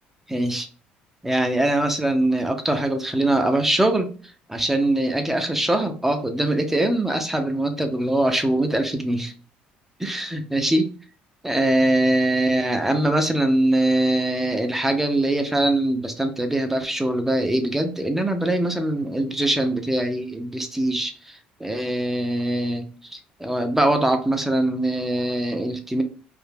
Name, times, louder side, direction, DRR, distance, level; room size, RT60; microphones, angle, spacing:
voice 1, 0.3-0.7 1.2-4.1 4.5-9.3 10.0-10.9 11.4-26.0, right 1 dB, 10° right, 6 dB, 0.5 m, -22 dB
2.4 x 2.2 x 3.4 m, 0.39 s
supercardioid pair, 85°, 4 cm